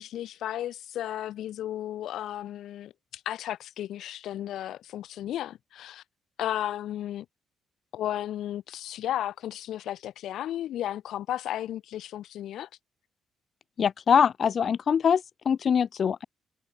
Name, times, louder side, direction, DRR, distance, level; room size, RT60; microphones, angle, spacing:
voice 1, 0.0-6.0 6.4-7.3 7.9-12.7, left 12 dB, 80° left, 4.0 m, -34 dB
voice 2, 13.8-16.2, left 7 dB, 50° left, 2.2 m, -23 dB
cardioid pair, 90°, 0 cm